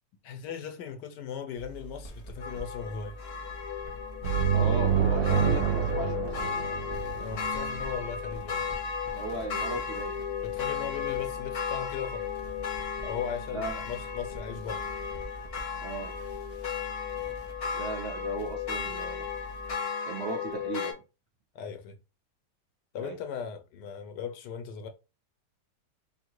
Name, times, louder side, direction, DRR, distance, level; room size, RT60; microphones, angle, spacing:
voice 1, 0.2-3.2 7.2-8.6 10.4-12.3 13.0-14.8 21.5-22.0 22.9-24.9, left 7 dB, 90° left, 1.4 m, -38 dB
sound 1, 1.6-19.7, right 1 dB, 30° left, 0.9 m, -44 dB
sound 2, 2.4-20.9, left 6 dB, 65° left, 1.7 m, -35 dB
sound 3, 4.2-7.8, right 8 dB, 80° right, 1.2 m, -27 dB
voice 2, 4.5-6.6 9.1-10.1 13.5-13.8 15.8-16.1 17.7-19.3 20.1-21.0 23.0-23.2, right 2 dB, 55° right, 0.8 m, -36 dB
3.1 x 2.7 x 4.5 m
omnidirectional pair, 1.8 m